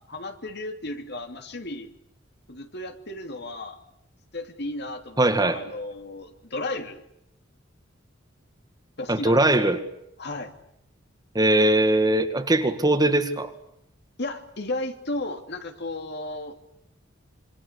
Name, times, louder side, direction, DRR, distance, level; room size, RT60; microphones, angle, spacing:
voice 1, 0.1-1.9 2.5-3.8 4.3-7.0 9.0-9.7 10.2-10.5 14.2-16.5, left 2 dB, 60° left, 6 dB, 3.0 m, -34 dB
voice 2, 5.2-5.6 9.1-9.8 11.3-13.5, right 1 dB, 20° right, 8 dB, 2.0 m, -20 dB
27.0 x 25.5 x 8.2 m, 0.78 s
head